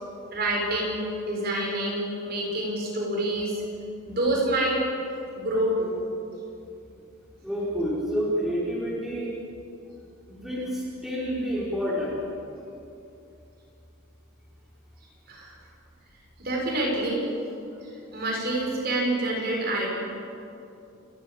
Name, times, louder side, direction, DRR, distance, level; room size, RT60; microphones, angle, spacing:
voice 1, 0.3-3.6 4.1-4.8 5.3-6.0 15.3-15.5 16.4-17.3 17.8-19.9, right 1 dB, 45° right, -2 dB, 6.7 m, -27 dB
voice 2, 7.4-9.3 10.3-12.2, equal, ahead, -7 dB, 5.5 m, -29 dB
29.5 x 15.5 x 8.9 m, 2.7 s
head